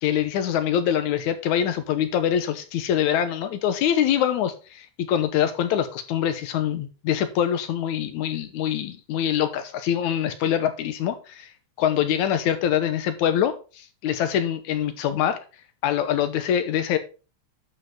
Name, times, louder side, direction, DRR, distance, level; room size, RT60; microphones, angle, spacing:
voice 1, 0.0-11.5 11.8-15.4 15.8-17.0, left 9 dB, 75° left, 10 dB, 2.2 m, -24 dB
11.0 x 5.7 x 3.6 m, 0.33 s
omnidirectional pair, 3.5 m